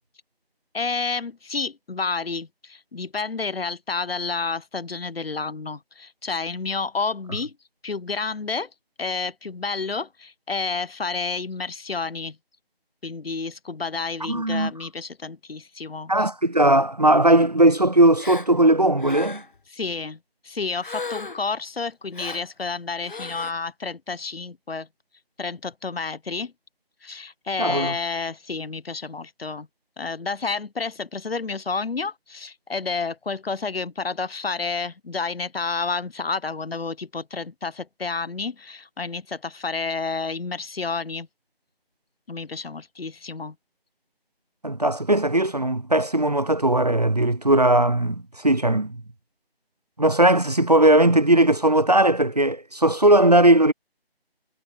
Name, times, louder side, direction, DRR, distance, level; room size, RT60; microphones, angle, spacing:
voice 1, 0.7-7.5 7.8-8.7 9.0-12.4 13.0-16.1 19.7-20.2 20.4-24.9 25.4-26.5 27.0-29.7 30.0-41.3 42.3-43.5, left 4 dB, 70° left, 1.0 m, -30 dB
voice 2, 14.2-14.7 16.1-19.4 27.6-27.9 44.6-49.0 50.0-53.7, right 1 dB, 40° right, 0.5 m, -18 dB
Gasp, 18.2-18.5 19.0-19.6 20.8-21.5 22.1-22.5 23.0-23.5, left 4 dB, 55° left, 1.6 m, -35 dB
figure-of-eight pair, 170°, 31 cm